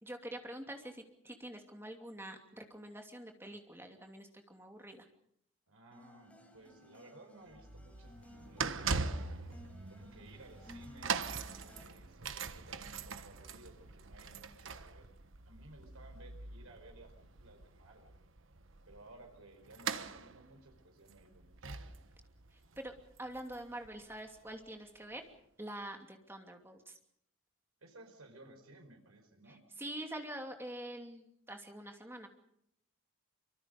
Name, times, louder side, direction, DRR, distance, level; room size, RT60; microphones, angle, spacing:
voice 1, 0.0-5.1 22.5-25.2 25.6-27.0 29.5-32.3, right 1 dB, 10° right, 4 dB, 2.8 m, -46 dB
voice 2, 5.7-11.3 11.7-15.1 15.4-18.3 18.9-22.0 27.8-29.6, right 2 dB, 85° right, 3 dB, 5.1 m, -58 dB
sound 1, 5.9-11.8, left 1 dB, 5° left, 4.4 m, -58 dB
sound 2, 7.5-24.5 25.1-25.2, right 5 dB, 70° right, 1.3 m, -42 dB
26.0 x 24.5 x 5.3 m, 0.70 s
head